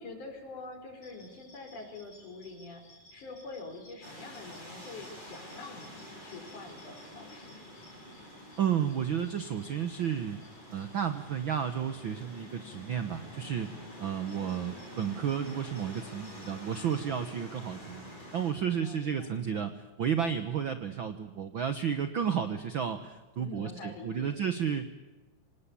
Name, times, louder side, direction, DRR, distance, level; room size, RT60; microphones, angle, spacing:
voice 1, 0.0-7.6 18.8-19.6 23.4-24.3, left 3 dB, 60° left, 4 dB, 5.7 m, -45 dB
sound 1, 1.0-17.2, left 1 dB, 35° left, 7.1 m, -59 dB
sound 2, 4.0-18.5, left 1 dB, 15° left, 7.5 m, -48 dB
voice 2, 8.6-10.4 10.7-13.7 14.0-24.9, right 8 dB, 90° right, 10 dB, 1.1 m, -32 dB
26.0 x 19.0 x 8.5 m, 1.1 s
omnidirectional pair, 3.9 m